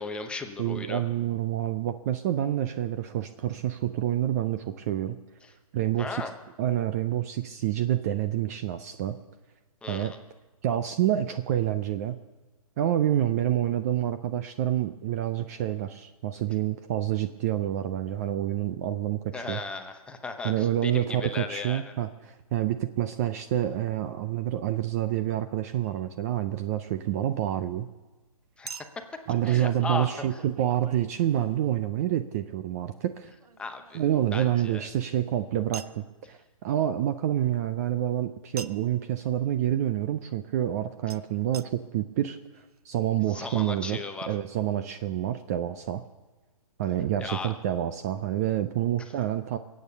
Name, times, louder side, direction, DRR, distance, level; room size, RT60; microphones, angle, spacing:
voice 1, 0.0-1.0 5.4-5.5 5.9-6.3 9.8-10.2 19.3-21.9 28.6-29.0 29.4-30.4 33.6-34.0 34.3-34.8 43.3-44.4 47.2-47.5 49.0-49.1, left 4 dB, 5° left, 5 dB, 0.8 m, -36 dB
voice 2, 0.6-5.2 5.7-6.2 6.6-9.2 9.9-10.1 10.6-12.2 12.8-19.6 20.4-27.9 29.3-33.3 33.9-44.0 44.3-46.0 46.8-49.6, right 12 dB, 25° right, 10 dB, 0.5 m, -28 dB
Chink clink, 25.8-26.0 28.7-31.8 33.4-35.1 35.7-36.0 38.6-39.0 41.1-41.2 41.5-41.7 42.3-42.4 42.6-42.7, right 6 dB, 85° right, 0.7 m, -45 dB
21.5 x 8.6 x 6.6 m, 1.2 s
hypercardioid pair, 150°, 19 cm